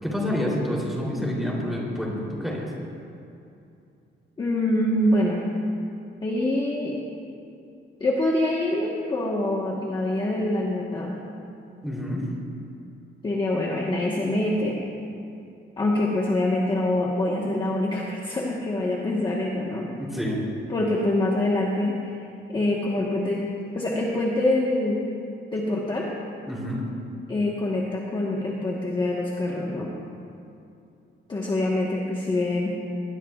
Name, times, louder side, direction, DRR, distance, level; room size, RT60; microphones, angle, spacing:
voice 1, 0.0-2.7 11.8-12.2 20.0-20.4 26.5-26.8, left 1 dB, ahead, -5 dB, 3.2 m, -28 dB
voice 2, 4.4-5.5 6.2-6.9 8.0-11.1 13.2-14.8 15.8-19.9 20.7-21.9 22.5-23.4 23.7-25.0 25.5-26.1 27.3-29.9 31.3-32.8, left 1 dB, 20° left, -4 dB, 1.3 m, -25 dB
20.5 x 20.0 x 2.4 m, 2.6 s
cardioid pair, 170°, 21 cm